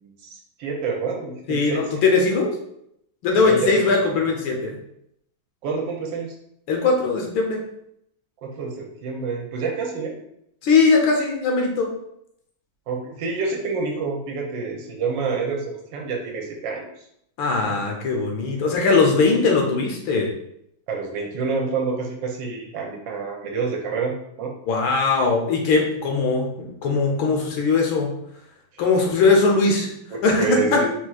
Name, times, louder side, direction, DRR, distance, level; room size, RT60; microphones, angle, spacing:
voice 1, 0.0-1.8 3.4-3.7 5.6-6.3 8.4-10.2 12.9-16.8 17.7-17.8 20.9-24.5 28.7-28.8 30.4-30.9, right 4 dB, 70° right, 1 dB, 1.3 m, -28 dB
voice 2, 1.5-2.6 3.2-4.8 6.7-7.6 10.6-11.9 17.4-20.3 24.7-28.1 28.8-29.9 30.2-30.8, left 4 dB, 80° left, 1 dB, 1.6 m, -20 dB
4.5 x 4.3 x 2.3 m, 0.74 s
omnidirectional pair, 2.2 m